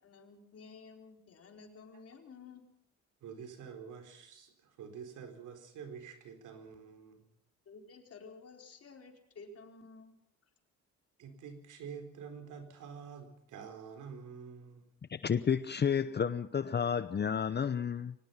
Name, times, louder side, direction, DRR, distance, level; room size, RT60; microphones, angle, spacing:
voice 1, 0.0-2.6 7.6-10.2, left 4 dB, 50° left, 4.7 m, -53 dB
voice 2, 3.2-7.3 11.2-14.9, right 6 dB, 85° right, 4.3 m, -48 dB
voice 3, 15.1-18.1, left 7 dB, 35° left, 0.8 m, -31 dB
24.0 x 18.5 x 5.8 m
cardioid pair, 90°, 30 cm